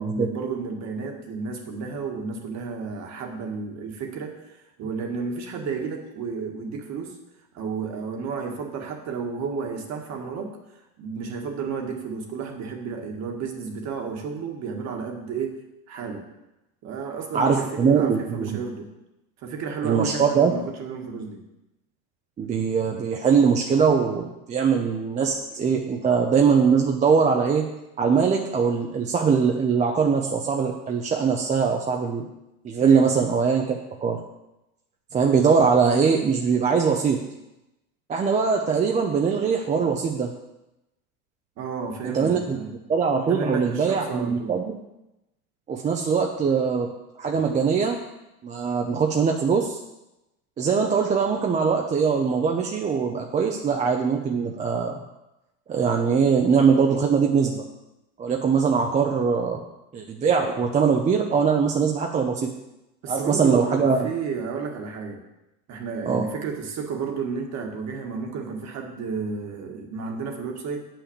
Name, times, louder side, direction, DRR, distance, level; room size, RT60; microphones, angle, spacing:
voice 1, 0.0-7.2 7.5-10.6 11.0-15.6 15.9-16.3 16.8-18.9 19.4-21.4 32.8-33.1 41.6-42.8 43.1-44.6 63.0-65.2 65.7-70.8, right 5 dB, 40° right, 3 dB, 1.7 m, -32 dB
voice 2, 17.3-18.6 19.8-20.5 22.4-27.6 28.0-32.3 32.6-33.8 34.0-34.2 35.1-37.2 38.1-40.3 42.0-42.6 42.9-44.8 45.7-46.9 47.2-48.0 48.4-49.8 50.6-54.9 55.7-57.6 58.2-59.6 59.9-62.5 63.1-64.1 66.1-66.3, right 6 dB, 15° right, 2 dB, 0.6 m, -22 dB
8.3 x 5.9 x 7.2 m, 0.93 s
supercardioid pair, 140°, 43 cm